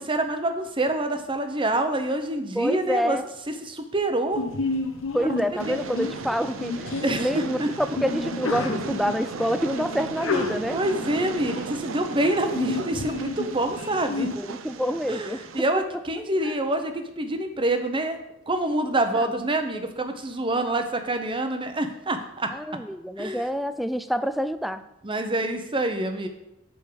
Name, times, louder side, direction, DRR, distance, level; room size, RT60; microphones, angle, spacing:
voice 1, 0.0-3.2 3.5-4.4 5.7-5.8 7.0-7.7 10.7-14.3 15.1-18.2 18.5-22.5 23.2-23.4 25.0-26.3, right 1 dB, 25° right, 7 dB, 0.8 m, -26 dB
voice 2, 2.6-3.2 5.1-10.8 14.3-15.4 16.4-16.6 19.2-19.3 22.5-24.8, equal, ahead, 12 dB, 0.3 m, -27 dB
Sneeze, 4.3-14.3, left 3 dB, 85° left, 1.1 m, -32 dB
Train, 5.6-15.6, right 5 dB, 80° right, 0.5 m, -36 dB
6.8 x 5.3 x 6.7 m, 0.87 s
head